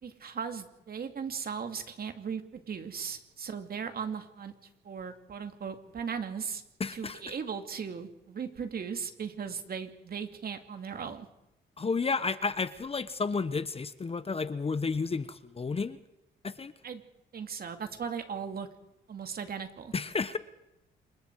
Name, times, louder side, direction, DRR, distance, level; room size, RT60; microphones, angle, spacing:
voice 1, 0.0-4.5 4.8-6.6 6.9-11.3 16.8-17.0 17.3-18.7 19.1-19.9, right 6 dB, 50° right, 7 dB, 2.6 m, -37 dB
voice 2, 6.8-7.2 11.8-16.0 16.4-16.7 19.9-20.4, left 4 dB, 30° left, 13 dB, 1.1 m, -31 dB
27.5 x 23.0 x 4.8 m, 0.84 s
cardioid pair, 90°, 20 cm